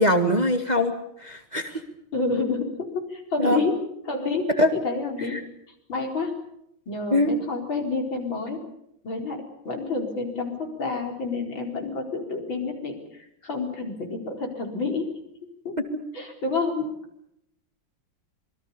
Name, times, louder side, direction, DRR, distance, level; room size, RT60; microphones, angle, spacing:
voice 1, 0.0-1.8 3.4-3.6 4.6-4.7 5.3-5.4 7.1-7.3 15.9-16.0, left 1 dB, 20° right, 6 dB, 1.7 m, -22 dB
voice 2, 2.1-3.8 4.1-5.4 5.9-6.3 6.9-8.6 9.0-15.1 15.6-15.8 16.1-16.9, left 3 dB, 60° left, 3 dB, 5.2 m, -29 dB
26.5 x 22.5 x 7.0 m, 0.76 s
omnidirectional pair, 2.4 m